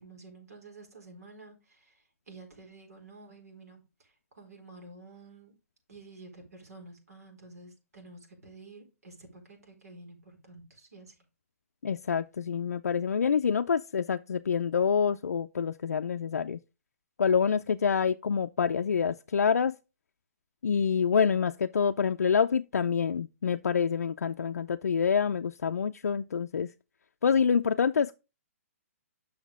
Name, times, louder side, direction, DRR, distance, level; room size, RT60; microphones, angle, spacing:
voice 1, 0.0-5.5 5.9-11.2, right 3 dB, 85° right, 4.1 m, -51 dB
voice 2, 11.8-16.6 17.2-19.8 20.6-26.7 27.2-28.2, left 6 dB, 85° left, 0.4 m, -27 dB
7.3 x 6.3 x 3.6 m
hypercardioid pair, 140°, 8 cm